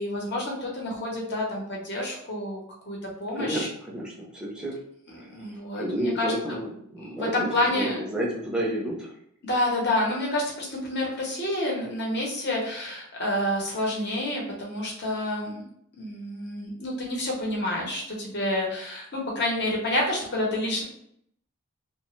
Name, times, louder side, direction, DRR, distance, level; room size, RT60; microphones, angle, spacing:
voice 1, 0.0-3.7 5.1-6.3 7.0-8.0 9.4-15.6 16.0-20.8, left 1 dB, 50° left, -2 dB, 0.8 m, -29 dB
voice 2, 3.4-4.8 5.2-7.5 7.7-9.1, right 1 dB, 5° right, -4 dB, 0.5 m, -31 dB
2.8 x 2.1 x 3.0 m, 0.72 s
head